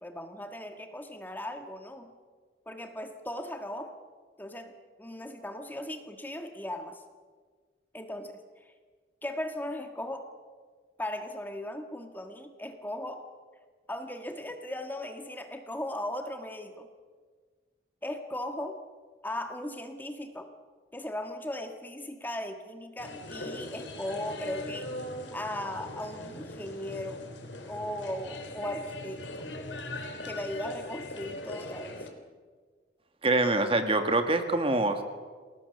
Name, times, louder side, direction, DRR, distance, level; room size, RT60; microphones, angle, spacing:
voice 1, 0.0-2.1 2.6-4.0 4.4-7.0 7.9-8.7 9.2-10.3 11.0-13.3 13.9-16.9 18.0-18.8 19.2-20.5 20.9-24.9 25.3-27.3 27.7-29.5 30.2-32.0, left 1 dB, 10° left, 6 dB, 1.5 m, -37 dB
sound 1, 23.0-32.1, left 1 dB, 80° left, 3.4 m, -40 dB
voice 2, 33.2-35.0, right 2 dB, 30° right, 7 dB, 1.9 m, -25 dB
29.0 x 19.0 x 6.9 m, 1.5 s
head